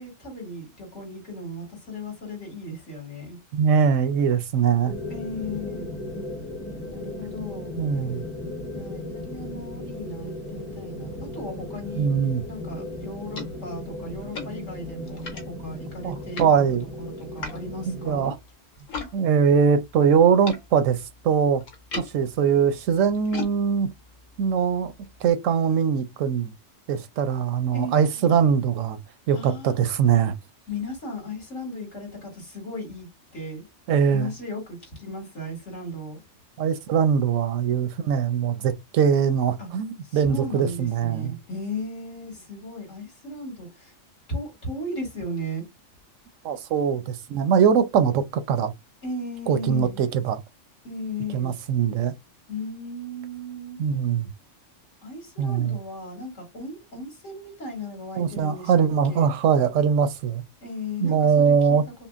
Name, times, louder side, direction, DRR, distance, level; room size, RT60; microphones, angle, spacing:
voice 1, 0.0-3.4 5.1-5.9 6.9-7.7 8.7-12.1 12.5-16.5 17.0-18.3 27.7-28.4 29.3-29.8 30.7-33.6 34.1-36.2 39.6-39.7 40.0-43.9 44.3-45.6 49.0-50.0 50.8-51.5 52.5-53.8 55.0-59.3 60.6-61.8, left 1 dB, 65° left, 2.6 m, -36 dB
voice 2, 3.5-4.9 7.8-8.2 12.0-12.4 16.0-16.9 17.9-18.3 19.1-21.0 21.2-21.6 22.0-23.9 24.4-24.9 25.2-26.5 26.9-29.0 29.3-30.3 33.9-34.3 36.6-41.3 46.4-48.7 49.5-50.4 51.3-52.1 53.8-54.3 55.4-55.8 58.2-60.4 61.0-61.8, right 7 dB, 90° right, 1.0 m, -22 dB
sound 1, 4.9-18.3, left 1 dB, 10° left, 0.8 m, -36 dB
sound 2, 12.7-19.1 19.4-25.3, left 4 dB, 85° left, 1.4 m, -41 dB
5.6 x 2.0 x 2.4 m
omnidirectional pair, 1.3 m